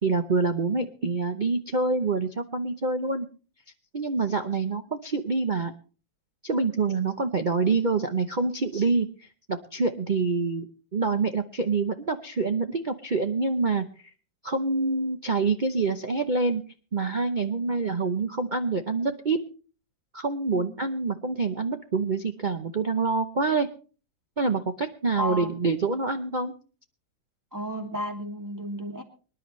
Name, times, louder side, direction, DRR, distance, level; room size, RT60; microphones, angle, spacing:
voice 1, 0.0-3.3 3.9-5.7 6.4-13.8 14.4-16.6 16.9-19.4 20.1-23.7 24.4-26.5, right 4 dB, 65° right, 8 dB, 0.4 m, -26 dB
voice 2, 25.2-25.5 27.5-29.0, equal, 10° right, 3 dB, 2.3 m, -33 dB
25.0 x 10.5 x 3.1 m, 0.38 s
omnidirectional pair, 2.1 m